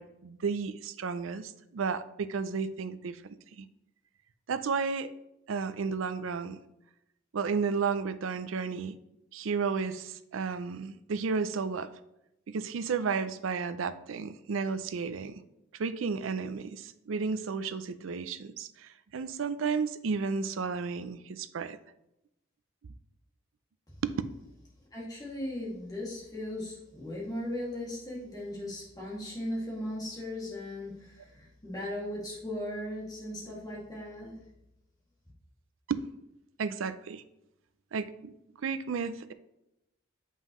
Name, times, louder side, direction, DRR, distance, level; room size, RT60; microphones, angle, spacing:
voice 1, 0.0-3.2 3.6-3.7 4.5-5.1 5.5-6.6 7.3-9.0 9.3-11.9 12.5-15.4 15.7-21.8 24.0-24.2 35.9-36.0 36.6-37.2 37.9-38.3 38.6-39.3, right 5 dB, 75° right, 12 dB, 0.4 m, -32 dB
voice 2, 24.9-34.4, left 1 dB, 20° left, -5 dB, 2.1 m, -37 dB
7.3 x 5.5 x 3.1 m, 0.86 s
head